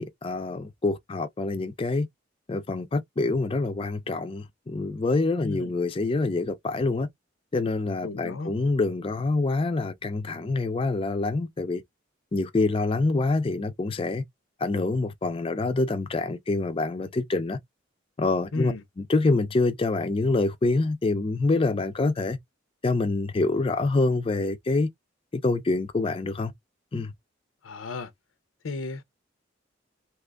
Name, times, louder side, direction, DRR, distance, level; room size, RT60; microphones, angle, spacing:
voice 1, 0.0-2.1 2.5-7.1 7.5-11.8 12.3-14.2 14.6-17.6 18.2-18.7 19.1-22.4 22.8-24.9 25.3-26.5 26.9-27.1, left 3 dB, 30° left, 0.4 m, -26 dB
voice 2, 5.4-5.7 8.0-8.5 18.5-18.8 27.6-28.1 28.6-29.0, left 3 dB, 85° left, 0.6 m, -33 dB
2.8 x 2.4 x 3.4 m
head